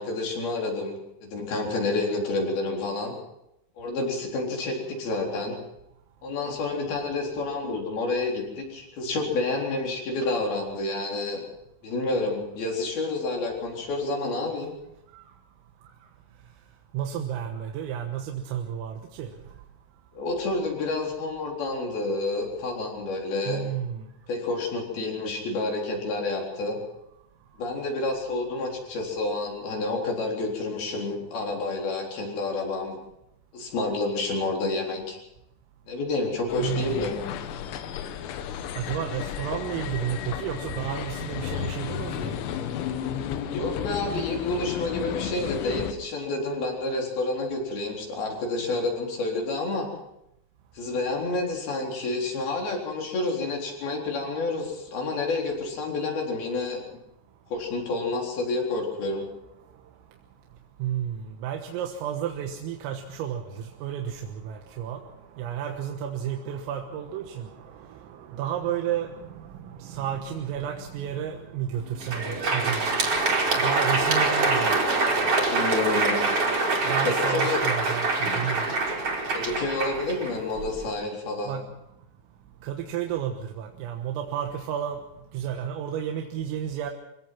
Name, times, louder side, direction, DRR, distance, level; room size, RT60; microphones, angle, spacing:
voice 1, 0.0-3.1 3.8-5.6 6.2-11.4 11.8-14.7 20.1-23.6 24.3-26.8 27.6-33.0 33.5-35.2 35.9-37.2 43.5-49.9 50.7-56.8 57.5-59.3 75.5-76.3 77.0-77.6 79.3-81.6, left 2 dB, 50° left, 0 dB, 5.5 m, -29 dB
voice 2, 16.9-19.3 23.5-24.1 36.6-37.1 38.7-42.4 60.8-73.0 73.5-74.8 76.8-78.8 81.5-81.7 82.6-85.0 85.3-86.9, right 9 dB, 85° right, 3 dB, 4.0 m, -32 dB
sound 1, 36.5-45.9, left 9 dB, 85° left, 4.0 m, -33 dB
Crowd, 71.9-80.8, right 3 dB, 30° right, 4.1 m, -25 dB
24.5 x 17.5 x 6.0 m, 0.83 s
omnidirectional pair, 5.9 m